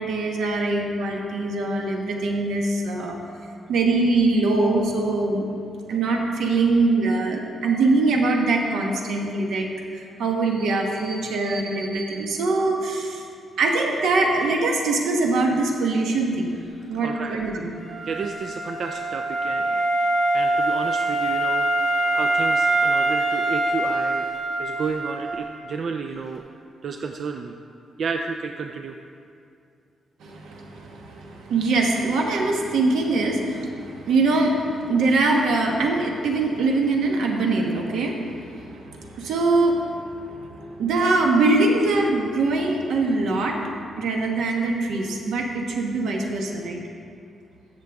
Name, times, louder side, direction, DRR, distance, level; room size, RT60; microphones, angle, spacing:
voice 1, 0.0-3.2 3.7-5.5 5.9-9.7 9.9-13.2 13.6-16.5 16.9-17.7 30.2-43.6 44.0-46.8, right 3 dB, 80° right, 1 dB, 1.2 m, -23 dB
voice 2, 17.0-17.4 18.0-21.6 22.1-26.5 26.8-27.6 28.0-29.0, right 5 dB, 50° right, 5 dB, 0.4 m, -32 dB
Wind instrument woodwind instrument, 17.7-25.5, right 2 dB, 5° right, 1.9 m, -24 dB
14.0 x 6.6 x 3.5 m, 2.4 s
cardioid pair, 155°, 0 cm